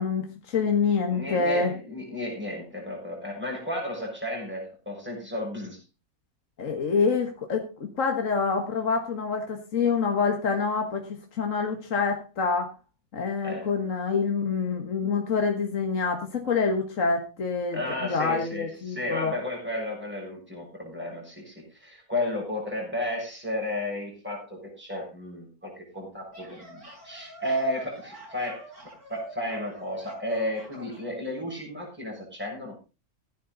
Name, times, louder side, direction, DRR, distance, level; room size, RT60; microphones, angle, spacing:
voice 1, 0.0-1.7 6.6-12.7 13.1-19.4, left 5 dB, 60° left, 3 dB, 1.9 m, -26 dB
voice 2, 1.1-5.8 13.4-13.7 17.7-28.6 29.1-32.7, left 1 dB, 5° right, -1 dB, 6.9 m, -33 dB
sound 1, 26.1-31.1, equal, 90° right, 8.1 m, -46 dB
16.5 x 9.9 x 4.0 m, 0.31 s
omnidirectional pair, 1.6 m